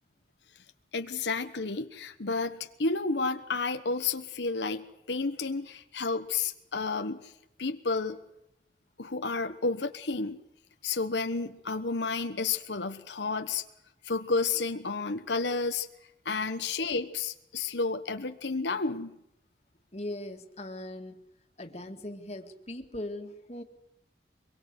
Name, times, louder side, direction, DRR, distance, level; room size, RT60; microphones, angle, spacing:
voice 1, 0.9-7.3 7.6-8.2 9.0-10.4 10.8-13.6 14.0-15.9 16.2-19.2, left 4 dB, 80° left, 8 dB, 1.2 m, -31 dB
voice 2, 19.9-21.2 21.6-23.6, left 1 dB, 35° left, 5 dB, 2.2 m, -39 dB
24.5 x 22.5 x 8.0 m, 0.80 s
head